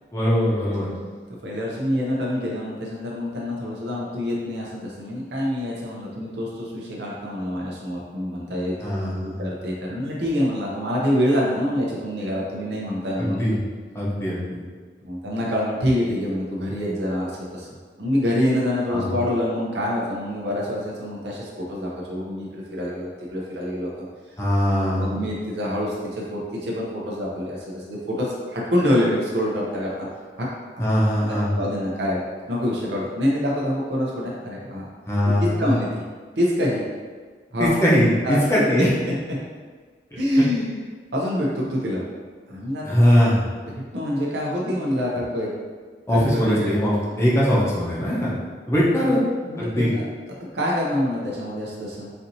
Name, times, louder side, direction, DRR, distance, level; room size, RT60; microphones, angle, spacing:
voice 1, 0.1-0.9 8.8-9.4 13.2-13.6 13.9-14.6 18.9-19.1 24.4-25.2 30.8-31.5 35.1-35.7 37.6-38.9 40.1-40.2 42.8-43.4 46.1-48.3 48.7-49.2 49.6-49.9, equal, 15° left, -7 dB, 0.7 m, -21 dB
voice 2, 1.4-8.8 9.1-13.4 15.0-23.9 24.6-29.9 30.4-30.5 31.5-32.2 32.5-34.8 35.4-36.0 36.4-36.8 37.5-37.7 38.2-38.4 38.8-39.1 40.2-40.8 41.1-42.0 42.5-43.0 43.6-45.5 46.1-46.7 49.0-50.0 50.5-52.1, left 1 dB, 80° right, -4 dB, 0.7 m, -26 dB
4.3 x 2.7 x 2.7 m, 1.5 s
head